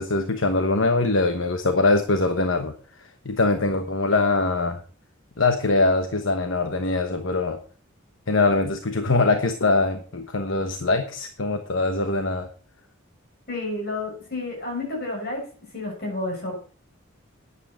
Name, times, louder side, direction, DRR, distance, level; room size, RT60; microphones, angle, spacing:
voice 1, 0.0-2.7 3.2-4.8 5.4-7.6 8.3-12.5, left 3 dB, 70° left, 7 dB, 1.1 m, -22 dB
voice 2, 13.5-15.4 15.7-16.6, left 2 dB, 50° left, 0 dB, 6.7 m, -30 dB
11.5 x 9.7 x 4.4 m, 0.39 s
head